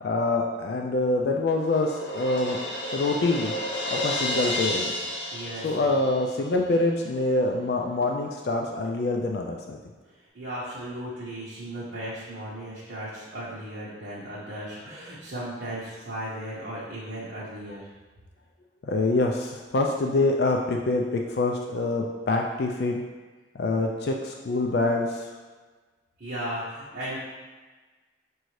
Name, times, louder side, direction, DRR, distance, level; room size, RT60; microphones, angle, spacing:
voice 1, 0.0-2.6 2.9-3.5 3.9-4.9 5.6-9.8 18.8-23.0 23.5-25.3, left 2 dB, 60° left, 2 dB, 0.4 m, -25 dB
Crash cymbal, 0.8-6.5, left 1 dB, 85° left, 0.9 m, -32 dB
voice 2, 5.3-6.0 10.1-17.9 26.2-27.2, right 1 dB, 70° right, -9 dB, 1.0 m, -36 dB
6.1 x 2.7 x 3.1 m, 1.3 s
head